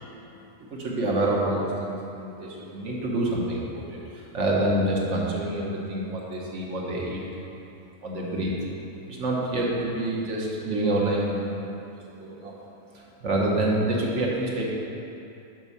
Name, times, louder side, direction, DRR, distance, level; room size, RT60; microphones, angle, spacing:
voice 1, 0.7-7.2 8.0-8.5 9.1-11.7 12.2-12.5 13.2-14.7, right 1 dB, 55° right, -3 dB, 1.3 m, -27 dB
6.1 x 5.4 x 5.5 m, 2.8 s
omnidirectional pair, 1.6 m